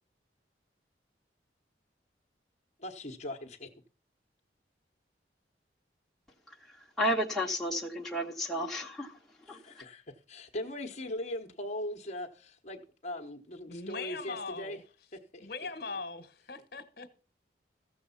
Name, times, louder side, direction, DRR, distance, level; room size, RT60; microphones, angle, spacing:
voice 1, 2.8-3.7 9.5-14.8 15.1-15.5, left 1 dB, 40° left, 1.1 m, -40 dB
voice 2, 7.0-9.1 9.5-9.6, equal, ahead, 1.2 m, -31 dB
voice 3, 13.7-14.8 15.4-17.1, left 4 dB, 55° left, 1.3 m, -40 dB
15.0 x 6.9 x 5.6 m
head